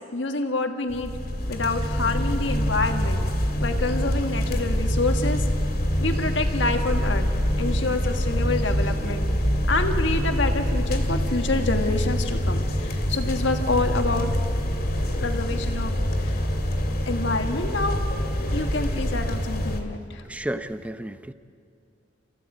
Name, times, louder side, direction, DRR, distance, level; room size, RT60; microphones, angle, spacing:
voice 1, 0.1-1.1 1.5-3.2 3.6-5.5 6.0-7.3 7.6-9.3 9.7-14.3 15.2-16.4 17.1-18.0 18.5-20.2, left 3 dB, 80° left, 5 dB, 1.6 m, -27 dB
sound 1, 0.9-19.8, equal, 55° left, 2.6 m, -25 dB
voice 2, 20.2-21.3, right 1 dB, 5° right, 11 dB, 0.7 m, -32 dB
29.5 x 15.0 x 8.5 m, 2.4 s
head